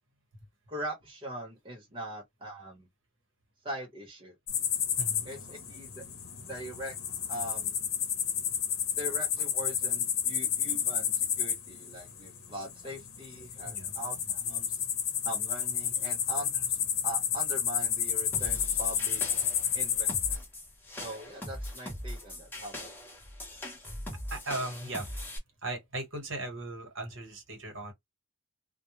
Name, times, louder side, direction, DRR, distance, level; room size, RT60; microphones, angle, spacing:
voice 1, 0.7-2.9 3.6-4.3 5.2-6.0 6.5-6.9 7.3-7.7 9.0-14.8 15.2-16.8 17.0-19.2 19.7-20.4 21.0-22.9, right 1 dB, 25° right, 0.8 m, -41 dB
sound 1, 4.5-20.4, left 8 dB, 65° left, 0.8 m, -31 dB
sound 2, 18.3-25.4, left 1 dB, 10° left, 0.7 m, -41 dB
voice 2, 24.3-25.1 25.6-27.9, right 2 dB, 60° right, 1.1 m, -38 dB
2.2 x 2.1 x 3.0 m
head